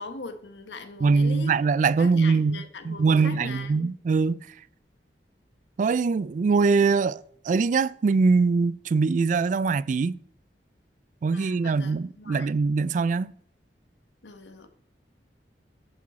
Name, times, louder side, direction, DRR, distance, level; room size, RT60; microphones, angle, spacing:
voice 1, 0.0-1.6 2.0-3.9 11.3-12.6 14.2-14.7, left 3 dB, 90° left, 1.2 m, -40 dB
voice 2, 1.0-4.4 5.8-10.2 11.2-13.3, right 4 dB, 45° right, 0.3 m, -23 dB
11.0 x 6.1 x 4.2 m
head